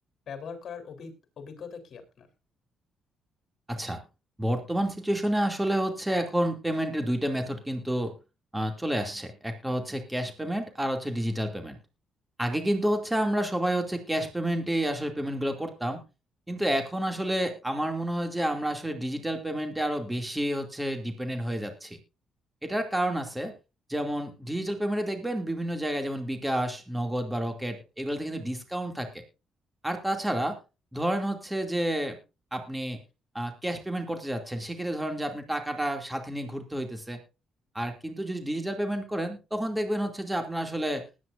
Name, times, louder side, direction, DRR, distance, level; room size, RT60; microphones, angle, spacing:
voice 1, 0.3-2.3, left 6 dB, 60° left, 7 dB, 3.9 m, -41 dB
voice 2, 3.7-4.0 4.4-8.1 8.5-11.8 12.4-16.0 16.5-22.0 22.6-23.5 23.9-29.2 29.8-30.6 30.9-32.2 32.5-33.0 33.3-37.2 37.7-41.0, right 1 dB, 10° right, 5 dB, 2.6 m, -30 dB
20.0 x 9.6 x 2.6 m, 0.29 s
cardioid pair, 90°, 0 cm